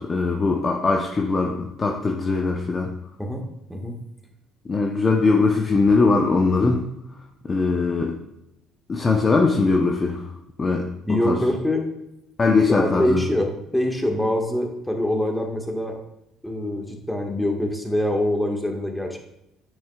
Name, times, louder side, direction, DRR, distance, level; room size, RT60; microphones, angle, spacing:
voice 1, 0.0-2.9 4.7-6.9 7.4-8.2 8.9-10.3 10.6-11.4 12.4-13.2, left 3 dB, 30° left, 1 dB, 0.8 m, -21 dB
voice 2, 11.0-11.8 12.7-16.0 16.4-19.2, left 1 dB, 5° left, 2 dB, 1.6 m, -24 dB
8.7 x 6.6 x 2.4 m, 0.84 s
hypercardioid pair, 60°, 0 cm